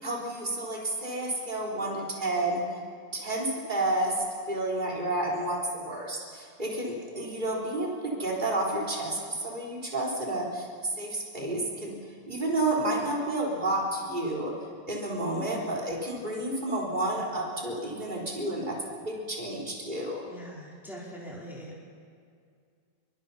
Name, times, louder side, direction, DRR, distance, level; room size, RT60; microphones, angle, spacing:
voice 1, 0.0-2.6 3.1-10.7 10.9-12.0 12.3-14.5 14.9-20.2, right 1 dB, 25° right, -3 dB, 4.2 m, -30 dB
voice 2, 20.3-21.8, equal, ahead, -5 dB, 4.7 m, -42 dB
26.5 x 24.0 x 5.7 m, 2.2 s
omnidirectional pair, 2.0 m